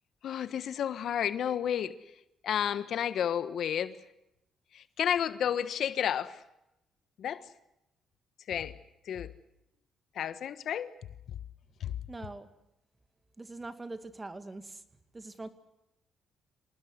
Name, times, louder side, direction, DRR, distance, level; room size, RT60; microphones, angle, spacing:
voice 1, 0.2-1.9 2.4-4.0 4.7-6.4 7.2-7.4 8.5-8.7 9.1-9.3 10.1-10.9 11.8-11.9, left 9 dB, 65° left, 14 dB, 1.3 m, -31 dB
voice 2, 12.1-12.5 13.4-14.8 15.1-15.5, right 2 dB, 20° right, 11 dB, 2.2 m, -42 dB
26.5 x 19.5 x 8.1 m, 0.86 s
cardioid pair, 90°, 0 cm